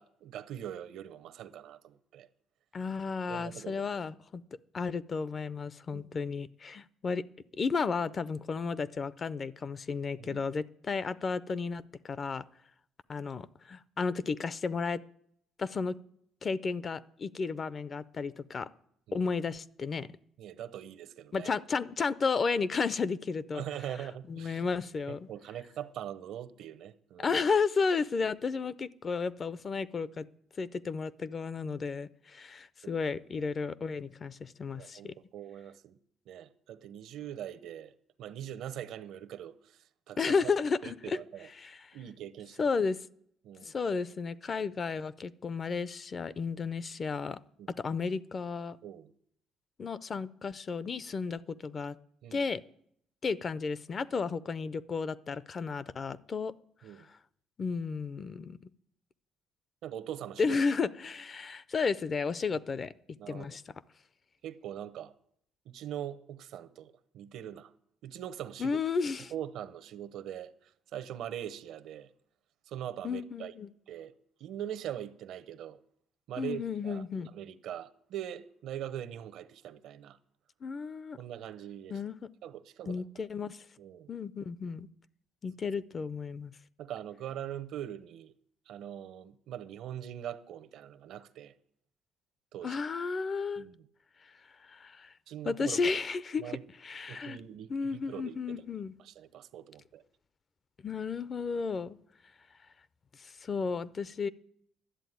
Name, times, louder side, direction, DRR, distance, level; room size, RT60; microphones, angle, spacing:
voice 1, 0.0-2.3 3.3-3.8 5.9-6.2 10.2-10.4 19.1-19.2 20.4-21.5 23.5-24.6 25.1-27.3 32.8-33.0 33.4-33.5 34.7-36.0 36.3-37.9 38.2-40.2 40.8-41.5 41.9-42.7 43.4-43.7 47.6-47.7 48.8-49.1 52.2-52.4 56.8-57.1 59.8-60.6 63.2-63.6 64.4-65.1 65.6-67.7 68.0-68.8 69.3-72.1 72.7-73.5 73.9-74.1 74.4-75.8 76.3-77.0 77.3-80.2 81.2-82.0 82.4-83.0 83.8-84.1 86.8-88.3 88.7-91.5 92.5-92.8 93.6-93.8 95.3-96.0 96.4-96.6 97.1-98.7 99.0-100.0, right 10 dB, 70° right, 0.8 m, -42 dB
voice 2, 2.7-4.4 4.7-7.2 7.5-12.4 13.1-15.0 15.6-16.0 16.4-18.7 19.1-20.1 21.3-23.6 24.3-25.2 27.2-30.3 30.6-35.1 40.2-41.2 41.6-41.8 42.6-43.0 43.6-47.4 47.8-48.8 49.8-52.0 52.3-52.6 53.2-56.5 57.0-57.1 57.6-58.6 60.4-62.9 63.3-63.7 68.6-69.3 73.0-73.7 76.4-77.3 80.6-81.2 81.9-82.2 82.8-83.6 84.1-84.9 85.4-86.5 92.6-93.7 94.6-95.1 95.4-96.4 96.8-97.4 97.7-98.9 100.8-102.0 103.2-104.3, left 5 dB, 35° left, 0.5 m, -33 dB
11.5 x 7.8 x 9.2 m
cardioid pair, 125°, 0 cm